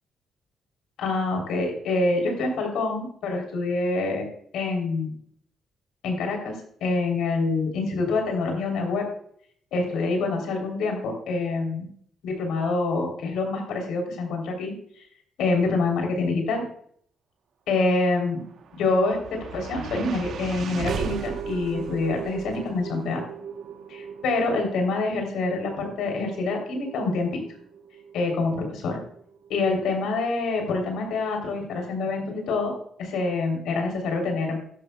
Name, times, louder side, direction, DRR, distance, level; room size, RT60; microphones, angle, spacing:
voice 1, 1.0-4.3 4.5-5.2 6.0-9.1 9.7-11.9 12.2-15.0 15.4-16.6 17.7-18.4 18.8-23.2 23.9-27.4 28.1-29.0 29.5-32.7 33.0-34.6, left 3 dB, 85° left, 2 dB, 3.2 m, -26 dB
sound 1, 18.3-30.6, right 6 dB, 65° right, 1.0 m, -37 dB
14.5 x 11.0 x 2.3 m, 0.63 s
cardioid pair, 90°, 0 cm